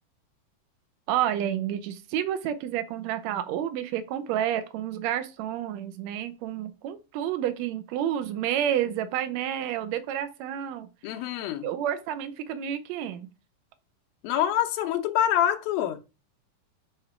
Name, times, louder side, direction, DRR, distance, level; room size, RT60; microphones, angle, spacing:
voice 1, 1.1-10.9 11.6-13.3, right 10 dB, 85° right, 1.5 m, -30 dB
voice 2, 11.0-11.7 14.2-16.0, left 11 dB, 85° left, 2.7 m, -26 dB
7.0 x 4.3 x 5.8 m
omnidirectional pair, 4.1 m